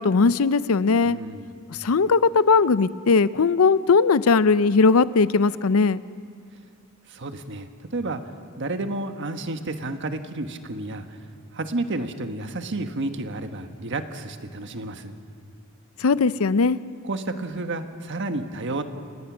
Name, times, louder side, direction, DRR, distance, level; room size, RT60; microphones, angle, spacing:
voice 1, 0.0-1.2 1.8-6.0 16.0-16.8, left 4 dB, 90° left, 16 dB, 0.6 m, -19 dB
voice 2, 1.0-1.5 7.1-8.2 8.6-11.2 11.5-15.1 17.0-18.8, right 2 dB, 60° right, 7 dB, 1.4 m, -31 dB
30.0 x 19.0 x 6.2 m, 2.3 s
head